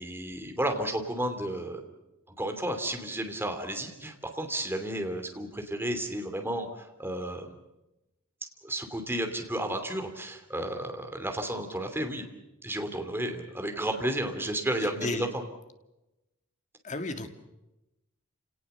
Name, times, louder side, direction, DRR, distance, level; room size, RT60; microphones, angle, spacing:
voice 1, 0.0-1.8 2.4-7.5 8.6-12.2 12.6-15.4, right 1 dB, 10° right, 5 dB, 2.9 m, -32 dB
voice 2, 14.8-15.3 16.8-17.3, left 2 dB, 35° left, 7 dB, 2.0 m, -33 dB
29.5 x 18.5 x 6.9 m, 0.96 s
head